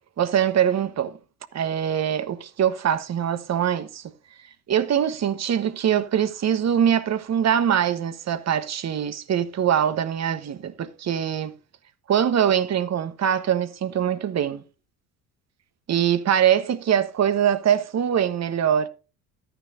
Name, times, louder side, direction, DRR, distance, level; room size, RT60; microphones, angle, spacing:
voice 1, 0.2-1.2 1.5-4.0 4.7-11.5 12.1-14.6 15.9-18.9, right 9 dB, 35° right, 1.2 m, -23 dB
13.5 x 10.0 x 2.7 m
hypercardioid pair, 65°, 44 cm